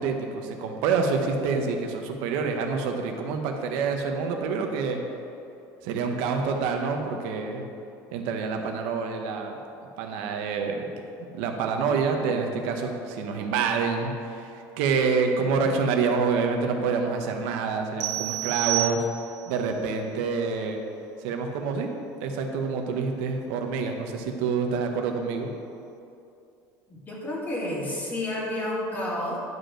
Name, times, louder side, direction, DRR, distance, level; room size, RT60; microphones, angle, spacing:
voice 1, 0.0-5.0 5.8-7.6 8.1-9.6 10.0-10.9 11.3-14.5 14.8-19.1 19.5-20.8 21.2-21.9 22.2-25.5, right 5 dB, 85° right, 3 dB, 1.1 m, -27 dB
sound 1, 18.0-19.5, right 15 dB, 50° right, 1.3 m, -29 dB
voice 2, 26.9-29.4, left 1 dB, 20° left, -3 dB, 2.0 m, -30 dB
11.0 x 5.3 x 6.4 m, 2.6 s
cardioid pair, 160°, 8 cm